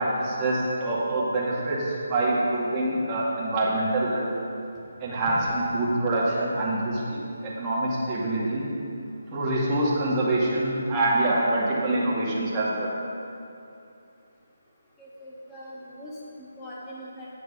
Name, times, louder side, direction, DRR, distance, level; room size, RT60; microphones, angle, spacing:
voice 1, 0.0-4.3 5.0-8.7 9.3-12.9, right 1 dB, 20° right, -7 dB, 2.0 m, -25 dB
voice 2, 15.0-16.1 16.4-17.3, equal, 15° left, -7 dB, 1.9 m, -42 dB
8.8 x 6.6 x 5.4 m, 2.7 s
figure-of-eight pair, 155°, 0 cm